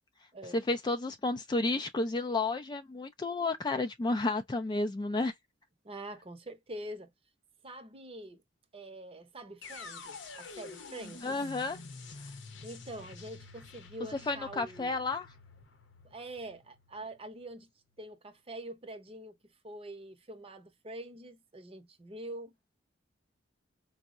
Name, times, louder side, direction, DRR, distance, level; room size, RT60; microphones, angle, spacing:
voice 1, 0.5-5.3 11.2-11.8 14.3-15.3, left 3 dB, 25° left, 0.3 m, -31 dB
voice 2, 5.8-7.1 7.6-8.4 8.7-11.4 12.6-15.0 16.0-17.7 18.0-19.4 19.6-22.5, right 1 dB, 30° right, 0.7 m, -45 dB
sound 1, 9.6-17.6, left 4 dB, 70° left, 0.7 m, -48 dB
4.4 x 2.0 x 2.4 m
head